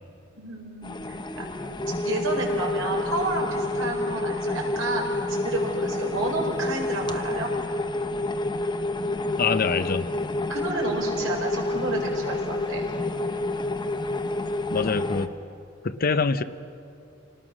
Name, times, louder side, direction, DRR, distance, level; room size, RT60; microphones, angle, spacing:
voice 1, 0.4-1.5 1.9-7.5 10.5-12.8, right 2 dB, 75° right, 0 dB, 4.7 m, -31 dB
sound 1, 0.8-15.3, left 2 dB, 20° left, 0.9 m, -28 dB
voice 2, 9.4-10.0 14.7-15.3 15.8-16.4, left 5 dB, 45° left, 13 dB, 0.6 m, -24 dB
27.5 x 19.0 x 6.2 m, 2.5 s
head